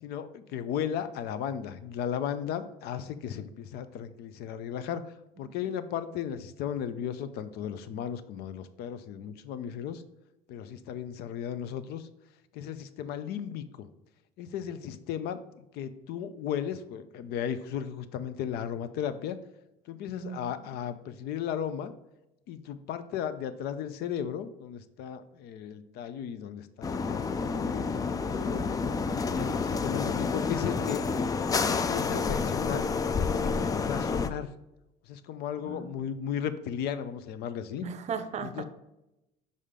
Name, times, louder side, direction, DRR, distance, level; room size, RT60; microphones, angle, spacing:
voice 1, 0.0-5.0 5.4-10.0 10.5-12.1 12.5-13.9 14.4-19.4 19.9-21.9 22.5-28.6 29.3-31.0 31.7-32.9 33.3-34.5 35.1-37.9 38.4-38.6, left 9 dB, 65° left, 13 dB, 0.6 m, -35 dB
voice 2, 20.2-20.7 35.7-35.9 37.8-38.6, right 6 dB, 40° right, 11 dB, 0.6 m, -37 dB
sound 1, 26.8-34.3, left 5 dB, 20° left, 0.3 m, -29 dB
5.5 x 4.9 x 3.7 m, 0.92 s
cardioid pair, 115°, 18 cm